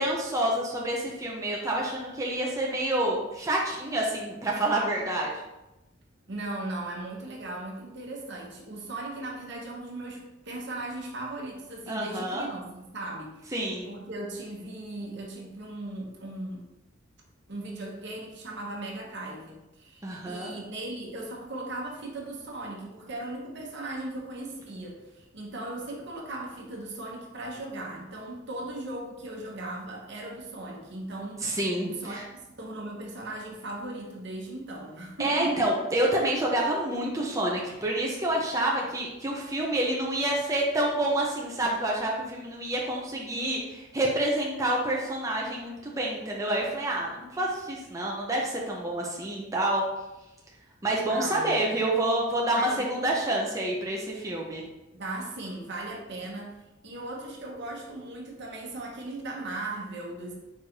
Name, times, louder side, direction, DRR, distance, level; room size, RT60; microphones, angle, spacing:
voice 1, 0.0-5.3 11.9-12.5 13.5-13.9 20.0-20.5 31.4-32.2 35.2-49.8 50.8-54.6, right 1 dB, 15° right, -2 dB, 0.6 m, -28 dB
voice 2, 6.3-13.5 13.8-16.7 17.5-31.5 31.9-32.2 32.6-35.7 51.1-51.8 52.6-53.1 54.9-56.5 56.8-60.4, right 2 dB, 65° right, -1 dB, 1.0 m, -38 dB
4.6 x 2.5 x 4.4 m, 0.97 s
head